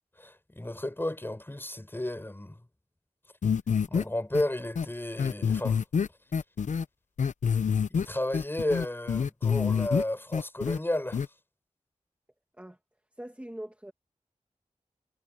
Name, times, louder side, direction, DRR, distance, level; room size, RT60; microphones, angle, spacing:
voice 1, 0.2-2.6 3.9-5.8 7.9-11.3, left 1 dB, 20° left, 5.1 m, -32 dB
sound 1, 3.4-4.0 4.3-4.4 4.8-4.9 5.2-6.8 7.2-8.0 8.3-10.0 10.3-10.8 11.1-11.3, left 6 dB, 85° left, 0.7 m, -26 dB
voice 2, 13.2-13.9, right 1 dB, 10° right, 2.4 m, -42 dB
wide cardioid pair, 80°, 12 cm